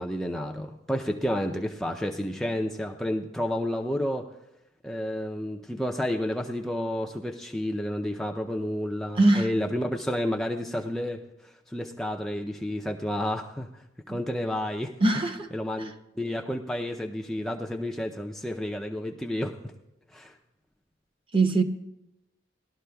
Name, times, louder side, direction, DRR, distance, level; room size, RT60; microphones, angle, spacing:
voice 1, 0.0-4.3 4.8-14.9 15.5-19.7 20.1-20.3, left 1 dB, ahead, 0.5 m, -31 dB
voice 2, 9.2-9.5 14.1-14.2 15.0-15.5 21.3-21.6, right 2 dB, 30° right, 0.8 m, -21 dB
19.5 x 12.0 x 2.3 m
head